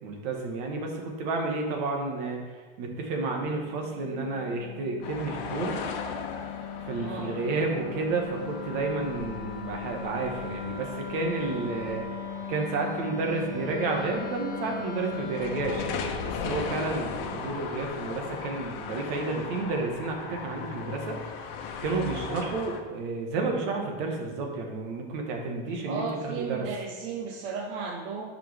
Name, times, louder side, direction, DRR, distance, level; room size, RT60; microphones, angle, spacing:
voice 1, 0.0-2.4 2.8-5.8 6.8-12.1 12.5-26.7, right 3 dB, 60° right, 1 dB, 1.6 m, -31 dB
Wind instrument woodwind instrument, 3.0-16.0, left 6 dB, 15° right, 2.5 m, -39 dB
sound 1, 5.0-22.8, left 6 dB, 65° left, 1.0 m, -38 dB
voice 2, 7.0-7.3 22.3-22.5 25.8-28.2, right 5 dB, 40° right, 1 dB, 0.7 m, -35 dB
11.0 x 5.0 x 3.5 m, 1.4 s
supercardioid pair, 165°, 30 cm